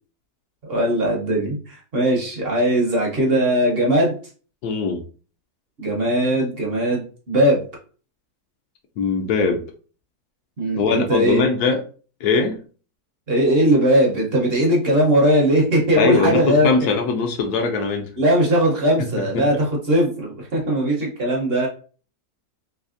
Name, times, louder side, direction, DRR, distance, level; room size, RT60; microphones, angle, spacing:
voice 1, 0.7-4.2 5.8-7.6 10.6-11.4 13.3-16.7 18.2-21.7, equal, 50° right, -1 dB, 0.8 m, -19 dB
voice 2, 4.6-5.0 9.0-9.6 10.8-11.8 12.2-12.6 16.0-18.1 19.3-19.6, left 4 dB, 80° left, 3 dB, 1.1 m, -21 dB
3.3 x 3.1 x 2.4 m, 0.39 s
omnidirectional pair, 1.7 m